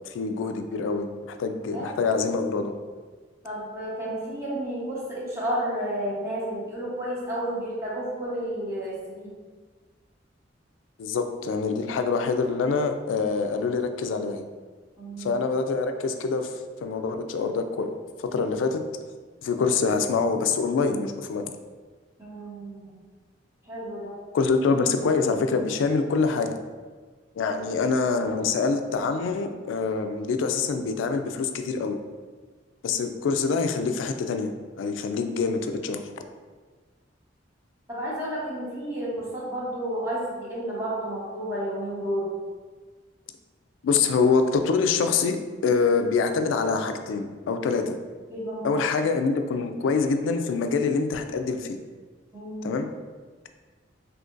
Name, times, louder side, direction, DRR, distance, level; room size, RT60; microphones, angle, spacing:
voice 1, 0.1-2.7 11.0-14.4 15.2-16.5 16.8-17.9 18.3-18.8 19.4-21.5 24.3-26.6 27.4-32.0 32.8-36.0 43.8-48.0 48.6-51.8 52.6-52.9, left 4 dB, 90° left, 7 dB, 0.3 m, -25 dB
voice 2, 3.4-9.3 15.0-15.4 22.2-22.9 23.6-24.1 27.5-27.6 37.9-42.3 48.3-48.7 52.3-52.7, right 1 dB, 15° right, -8 dB, 1.0 m, -31 dB
3.7 x 2.8 x 2.5 m, 1.4 s
head